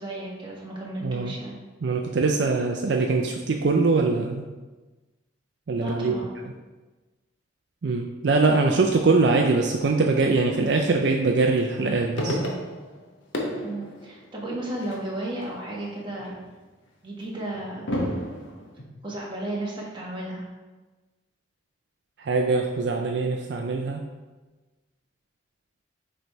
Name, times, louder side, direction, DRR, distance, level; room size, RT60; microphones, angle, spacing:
voice 1, 0.0-1.5 5.8-6.3 13.6-16.4 17.0-17.9 19.0-20.4, right 1 dB, 25° right, -4 dB, 1.4 m, -33 dB
voice 2, 1.0-1.3 1.8-4.5 5.7-6.1 7.8-12.4 22.2-24.0, right 3 dB, 60° right, 2 dB, 0.4 m, -22 dB
sound 1, 11.5-13.1 13.3-15.5 15.9-16.4 17.2-18.8, equal, 85° left, 1.0 m, -32 dB
6.6 x 3.3 x 4.6 m, 1.2 s
head